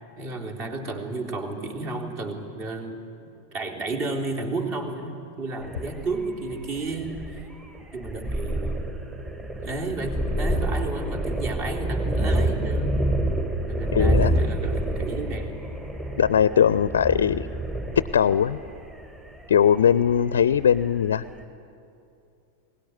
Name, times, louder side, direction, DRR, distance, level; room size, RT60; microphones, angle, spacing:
voice 1, 0.2-3.0 3.5-7.5 7.9-8.8 9.6-13.0 13.7-15.5, right 3 dB, 40° right, 2 dB, 3.5 m, -32 dB
sound 1, 5.6-21.1, right 1 dB, 20° right, 2.5 m, -28 dB
voice 2, 13.9-14.3 16.2-17.5 18.0-18.6 19.5-21.2, left 8 dB, 65° left, 16 dB, 0.5 m, -20 dB
22.0 x 20.0 x 9.6 m, 2.6 s
figure-of-eight pair, 90°, 0 cm